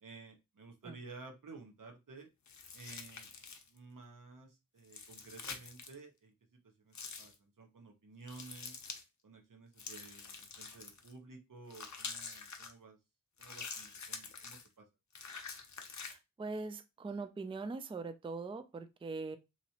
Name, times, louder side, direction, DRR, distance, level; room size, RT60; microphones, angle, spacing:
voice 1, 0.0-2.3 2.7-3.3 3.7-8.7 9.2-13.0 13.4-14.8, right 3 dB, 70° right, 0.9 m, -53 dB
sound 1, 2.5-3.8 4.8-6.0 6.9-7.4 8.3-9.0 9.8-11.1 11.7-12.7 13.4-14.7 15.1-16.2, left 5 dB, 55° left, 0.6 m, -46 dB
voice 2, 16.0-19.4, right 3 dB, 15° right, 0.3 m, -42 dB
3.0 x 2.6 x 2.8 m
wide cardioid pair, 70°, 34 cm